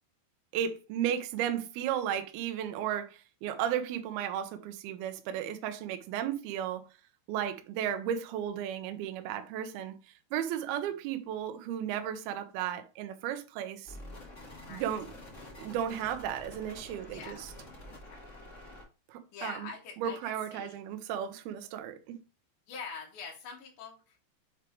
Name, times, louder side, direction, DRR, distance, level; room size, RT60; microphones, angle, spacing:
voice 1, 0.5-6.9 7.3-14.0 14.7-15.1 15.6-17.5 19.1-19.7 20.0-22.1, right 10 dB, 90° right, 2.2 m, -34 dB
sound 1, 13.8-18.8, left 1 dB, 85° left, 0.6 m, -48 dB
voice 2, 16.3-17.5 18.1-18.4 19.3-20.2 20.5-20.8 22.7-24.3, left 5 dB, 70° left, 2.0 m, -45 dB
7.3 x 3.4 x 4.4 m
omnidirectional pair, 5.5 m